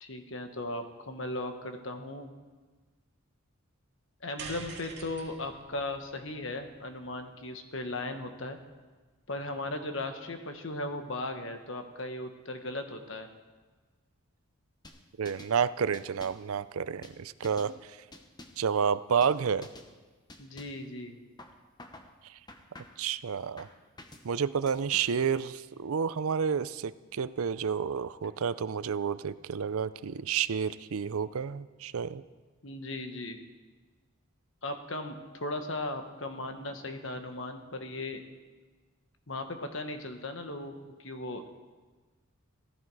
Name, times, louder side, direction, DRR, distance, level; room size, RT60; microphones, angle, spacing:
voice 1, 0.0-2.3 4.2-8.6 9.3-13.3 20.4-21.2 32.6-33.4 34.6-38.2 39.3-41.5, left 2 dB, 60° left, 6 dB, 1.4 m, -37 dB
sound 1, 4.4-8.8, right 4 dB, 50° right, 2.2 m, -48 dB
sound 2, 14.8-15.6 15.9-16.5 17.0-17.7 18.1-18.7 19.2-19.4 19.6-19.9 20.3-20.9 21.4-22.1 22.5-23.1 23.6-24.3 24.7-25.3, left 2 dB, 20° left, 1.0 m, -50 dB
voice 2, 15.2-17.7 18.6-19.7 23.0-23.7 24.2-32.2, right 7 dB, 80° right, 16 dB, 0.5 m, -30 dB
15.5 x 15.0 x 4.8 m, 1.3 s
head